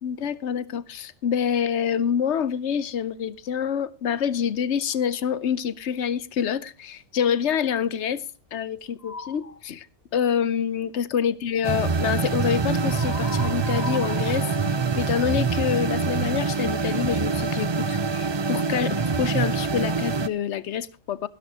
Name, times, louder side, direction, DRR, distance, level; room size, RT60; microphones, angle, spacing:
voice 1, 0.0-8.2 8.5-9.9 10.1-14.5 15.0-21.3, left 8 dB, 60° left, 1.0 m, -26 dB
sound 1, 9.0-9.6 12.9-15.6, left 3 dB, 30° left, 1.1 m, -38 dB
sound 2, 11.6-20.3, right 4 dB, 45° right, 0.3 m, -25 dB
16.0 x 12.5 x 2.9 m
omnidirectional pair, 1.4 m